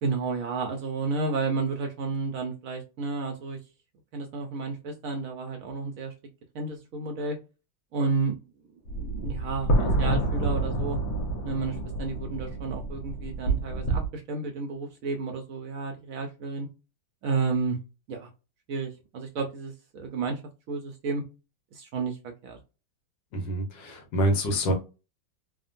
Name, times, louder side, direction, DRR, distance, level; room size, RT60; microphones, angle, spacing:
voice 1, 0.0-3.6 4.1-6.1 6.5-7.4 7.9-8.4 8.9-11.0 11.4-16.7 17.2-17.8 18.1-18.3 18.7-20.4 20.7-21.2 21.7-22.6, right 4 dB, 75° right, 0.8 m, -31 dB
sound 1, 8.9-14.1, right 2 dB, 65° left, 1.3 m, -28 dB
voice 2, 23.3-24.7, equal, 85° left, 1.6 m, -26 dB
3.5 x 2.1 x 2.5 m
omnidirectional pair, 2.0 m